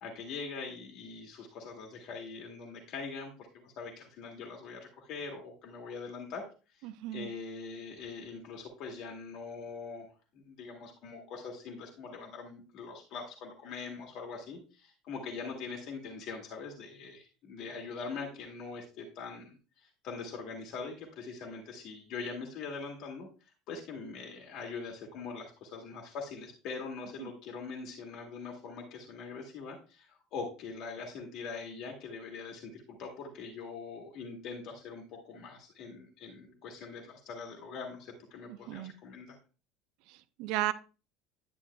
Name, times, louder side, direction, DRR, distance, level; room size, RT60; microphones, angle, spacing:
voice 1, 0.0-10.1 10.3-39.4, left 4 dB, 50° left, 0 dB, 1.9 m, -43 dB
voice 2, 6.8-7.3 27.2-27.3 38.5-38.9 40.1-40.7, right 15 dB, 55° right, 14 dB, 0.6 m, -35 dB
11.0 x 8.9 x 2.3 m, 0.34 s
figure-of-eight pair, 65°, 0 cm